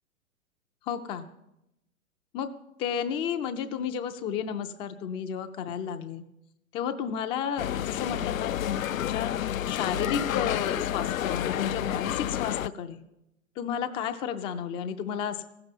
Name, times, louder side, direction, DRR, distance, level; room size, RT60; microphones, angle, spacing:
voice 1, 0.8-1.3 2.3-2.5 2.8-6.2 6.7-9.3 9.7-13.0 13.6-15.4, left 8 dB, 15° left, 8 dB, 0.4 m, -32 dB
sound 1, 7.6-12.7, left 11 dB, 75° left, 0.5 m, -30 dB
15.5 x 6.8 x 8.8 m, 0.86 s
figure-of-eight pair, 110°, 41 cm